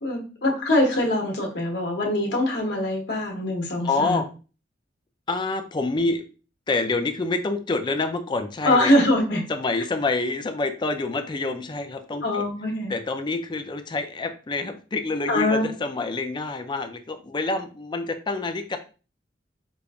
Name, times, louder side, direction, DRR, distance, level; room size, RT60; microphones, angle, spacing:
voice 1, 0.0-4.2 8.6-9.4 12.2-12.9 15.3-15.6, left 1 dB, 65° left, 1 dB, 1.0 m, -23 dB
voice 2, 3.8-4.3 5.3-6.2 6.7-8.9 9.5-12.4 12.9-18.8, left 3 dB, 25° left, 8 dB, 0.4 m, -27 dB
5.1 x 2.5 x 2.3 m, 0.35 s
head